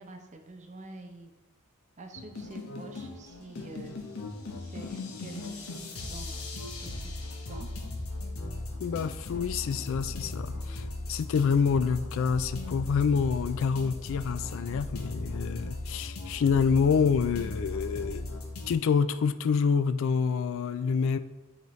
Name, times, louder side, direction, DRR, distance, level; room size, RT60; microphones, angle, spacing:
voice 1, 0.0-1.3 2.0-4.0 4.5-7.1 7.5-7.7, right 2 dB, 35° right, 5 dB, 0.7 m, -47 dB
sound 1, 2.2-18.7, left 2 dB, 80° left, 1.0 m, -38 dB
voice 2, 8.8-18.3 18.7-21.2, left 6 dB, 65° left, 13 dB, 0.3 m, -27 dB
9.2 x 4.0 x 3.2 m, 1.1 s
head